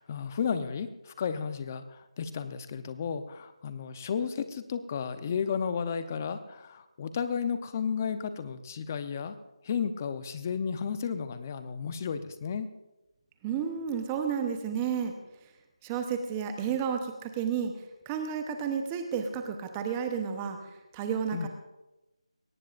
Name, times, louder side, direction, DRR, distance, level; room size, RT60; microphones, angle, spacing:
voice 1, 0.0-9.3 9.6-12.7 21.3-21.5, left 6 dB, 25° left, 11 dB, 0.8 m, -33 dB
voice 2, 13.4-15.1 15.8-17.7 18.1-20.6 20.9-21.5, right 7 dB, 15° right, 5 dB, 0.9 m, -31 dB
22.0 x 18.0 x 2.6 m, 0.99 s
figure-of-eight pair, 165°, 3 cm